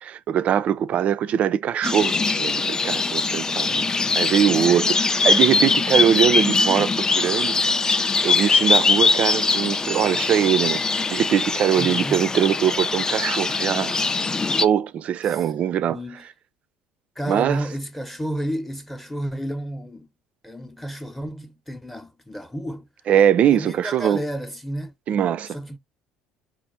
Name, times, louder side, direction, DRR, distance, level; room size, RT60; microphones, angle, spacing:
voice 1, 0.0-3.9 4.2-7.6 7.8-8.0 8.2-14.2 14.5-16.2 17.3-17.6 23.1-24.2 25.1-25.6, right 9 dB, 50° right, 0.4 m, -22 dB
sound 1, 1.8-14.7, left 4 dB, 20° left, 0.3 m, -22 dB
voice 2, 3.6-4.3 11.8-12.2 15.3-15.4 15.9-16.2 17.2-20.1 20.4-22.9 23.4-24.9 25.5-25.8, equal, 5° left, 0.8 m, -31 dB
4.3 x 2.4 x 3.9 m
hypercardioid pair, 70°, 3 cm